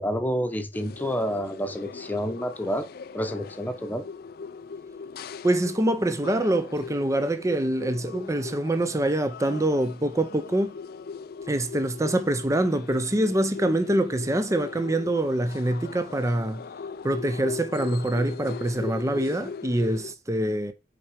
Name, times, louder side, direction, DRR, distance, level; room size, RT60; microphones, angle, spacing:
voice 1, 0.0-2.9 3.1-4.0, equal, 10° left, 0.9 m, -29 dB
sound 1, 0.7-20.1, left 5 dB, 55° left, 0.4 m, -39 dB
voice 2, 5.4-10.7 11.5-16.6 17.0-20.7, right 1 dB, 15° right, 0.5 m, -25 dB
5.9 x 4.7 x 5.1 m
head